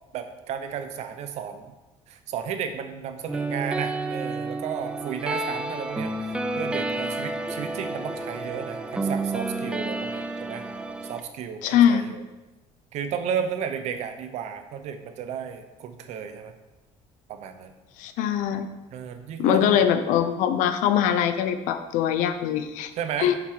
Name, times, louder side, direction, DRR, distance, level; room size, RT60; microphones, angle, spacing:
voice 1, 0.1-1.6 2.1-10.6 11.0-12.2 12.9-16.5 17.3-17.7 18.9-20.0 22.9-23.3, right 8 dB, 60° right, 8 dB, 0.9 m, -33 dB
sound 1, 3.3-11.2, right 2 dB, 5° right, 0.4 m, -30 dB
voice 2, 11.6-12.0 18.0-18.7 19.4-22.9 23.2-23.3, left 9 dB, 80° left, 10 dB, 0.7 m, -22 dB
7.0 x 6.7 x 4.7 m, 1.1 s
cardioid pair, 150°, 13 cm